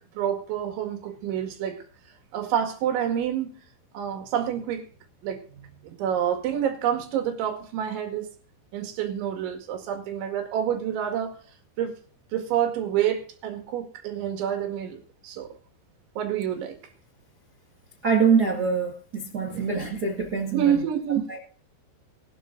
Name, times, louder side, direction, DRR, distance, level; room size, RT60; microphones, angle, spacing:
voice 1, 0.2-1.8 2.3-3.5 3.9-4.9 5.2-5.4 5.8-8.3 8.7-11.4 11.8-12.0 12.3-15.0 15.2-15.5 16.2-16.8 19.5-19.7 20.5-21.2, right 9 dB, 80° right, 4 dB, 4.4 m, -28 dB
voice 2, 18.0-20.7 21.3-21.4, right 5 dB, 45° right, 0 dB, 1.2 m, -24 dB
20.5 x 12.0 x 2.7 m, 0.44 s
omnidirectional pair, 5.3 m